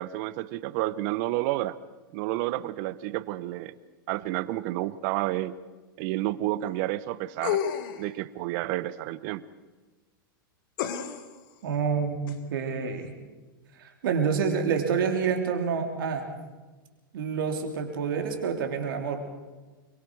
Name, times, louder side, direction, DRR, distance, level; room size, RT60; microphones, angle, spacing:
voice 1, 0.0-1.8 2.1-3.7 4.1-5.6 6.0-7.6 8.0-9.4, right 16 dB, 50° right, 17 dB, 0.9 m, -30 dB
sound 1, 7.4-8.1 10.8-11.4 12.3-12.4, left 9 dB, 60° left, 1.8 m, -30 dB
voice 2, 11.6-13.1 13.8-16.3 17.1-19.2, right 6 dB, 70° right, 3 dB, 3.2 m, -28 dB
24.5 x 23.0 x 4.7 m, 1.3 s
hypercardioid pair, 105°, 12 cm